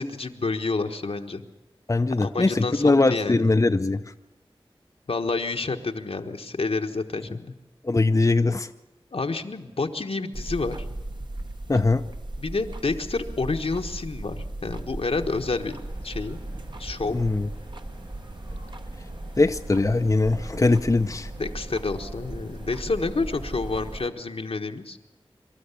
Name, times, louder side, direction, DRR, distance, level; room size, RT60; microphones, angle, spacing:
voice 1, 0.0-1.4 2.2-3.5 5.1-7.5 9.1-10.8 12.4-15.8 16.0-16.4 16.8-17.2 21.4-25.0, left 3 dB, 75° left, 5 dB, 1.3 m, -29 dB
voice 2, 1.9-4.0 7.8-8.7 11.7-12.0 17.1-17.5 19.4-21.3, left 3 dB, 35° left, 7 dB, 0.6 m, -21 dB
sound 1, 10.3-24.1, right 1 dB, 50° right, 1.2 m, -37 dB
sound 2, 15.1-24.1, right 1 dB, 85° right, 4.4 m, -47 dB
25.0 x 13.0 x 8.3 m, 1.1 s
wide cardioid pair, 55°, 10 cm